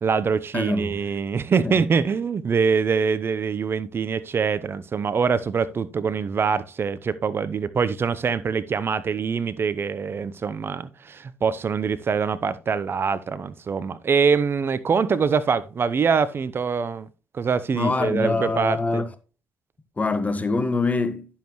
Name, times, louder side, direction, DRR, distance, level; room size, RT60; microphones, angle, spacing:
voice 1, 0.0-17.1 17.3-19.0, right 6 dB, 45° right, 0.7 m, -24 dB
voice 2, 0.5-0.9 1.6-1.8 17.7-19.0 20.0-21.3, left 3 dB, 30° left, 1.4 m, -24 dB
11.0 x 7.3 x 3.1 m
hypercardioid pair, 50°, 5 cm